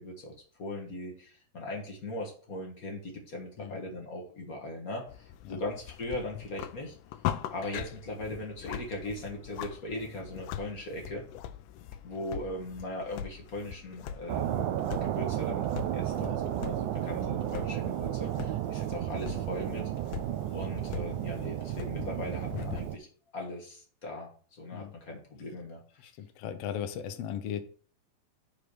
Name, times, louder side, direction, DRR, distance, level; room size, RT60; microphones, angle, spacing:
voice 1, 0.0-7.0 7.5-11.2 12.0-19.8 20.5-23.1 23.3-26.1, left 1 dB, 40° left, 0 dB, 1.4 m, -39 dB
sound 1, 5.1-22.9, left 10 dB, 85° left, 2.1 m, -42 dB
sound 2, 14.3-23.0, right 12 dB, 85° right, 2.1 m, -33 dB
voice 2, 26.0-27.6, left 9 dB, 70° left, 8 dB, 1.6 m, -37 dB
5.2 x 4.9 x 6.2 m, 0.43 s
omnidirectional pair, 3.6 m